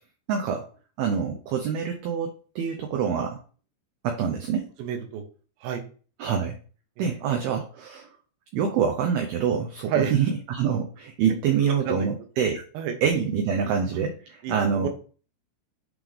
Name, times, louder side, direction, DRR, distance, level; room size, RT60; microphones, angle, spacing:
voice 1, 0.3-0.7 1.0-3.4 4.0-4.7 6.2-6.6 7.0-8.1 8.5-12.6 13.0-14.9, right 7 dB, 90° right, 3 dB, 2.2 m, -26 dB
voice 2, 4.8-5.2 5.6-5.8 7.0-7.4 9.9-10.1 11.9-12.1 12.7-12.9 14.4-14.9, right 7 dB, 70° right, 5 dB, 2.4 m, -30 dB
8.0 x 3.6 x 3.3 m, 0.39 s
omnidirectional pair, 5.4 m